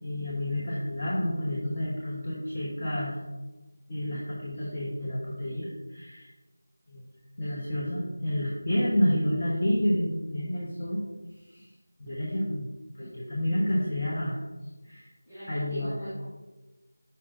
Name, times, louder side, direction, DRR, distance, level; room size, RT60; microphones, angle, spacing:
voice 1, 0.0-3.2 3.9-6.3 6.9-7.0 7.4-11.0 11.5-11.7 12.0-12.6 12.9-14.4 14.8-15.1 15.5-15.9, left 1 dB, 30° left, -5 dB, 1.1 m, -29 dB
voice 2, 15.3-16.2, equal, 10° left, -13 dB, 2.0 m, -42 dB
8.1 x 5.6 x 2.5 m, 1.2 s
figure-of-eight pair, 175°, 0 cm